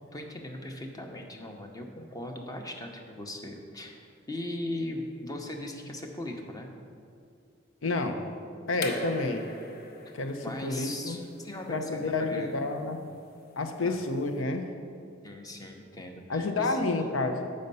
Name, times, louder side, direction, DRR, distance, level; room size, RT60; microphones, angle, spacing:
voice 1, 0.1-6.7 10.4-12.5 13.8-14.0 15.2-16.8, left 1 dB, 20° left, 3 dB, 0.7 m, -39 dB
voice 2, 7.8-8.3 8.7-9.5 10.1-11.2 11.7-13.0 13.6-14.7 16.3-17.5, left 3 dB, 90° left, 6 dB, 0.7 m, -29 dB
sound 1, 8.7-14.3, left 2 dB, 50° left, 0.8 m, -42 dB
7.9 x 5.2 x 5.4 m, 2.3 s
head